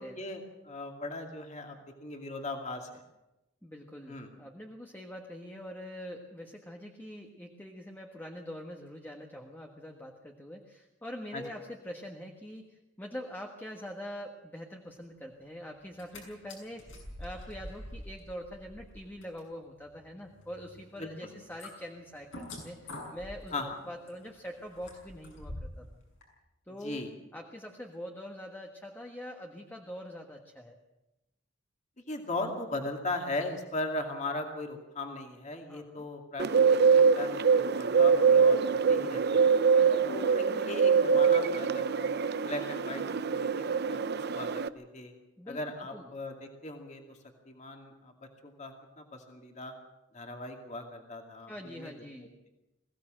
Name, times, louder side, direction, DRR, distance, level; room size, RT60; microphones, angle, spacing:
voice 1, 0.0-3.0 4.1-4.3 11.3-11.4 21.0-21.3 23.5-23.8 26.8-27.1 32.1-39.5 40.1-45.1 45.5-47.2 47.5-48.1 48.4-49.7 50.1-51.9, left 2 dB, 40° left, 3 dB, 2.5 m, -38 dB
voice 2, 3.6-25.9 26.7-27.0 27.3-30.8 35.7-36.1 39.7-40.2 45.4-45.6 45.9-46.1 51.5-52.3, equal, 10° left, 1 dB, 1.4 m, -44 dB
sound 1, 15.8-16.2 16.5-25.9 26.2-26.3, left 1 dB, 75° left, 6.5 m, -47 dB
Bird, 36.4-44.7, right 5 dB, 55° right, 0.6 m, -24 dB
22.0 x 16.0 x 7.7 m, 0.98 s
head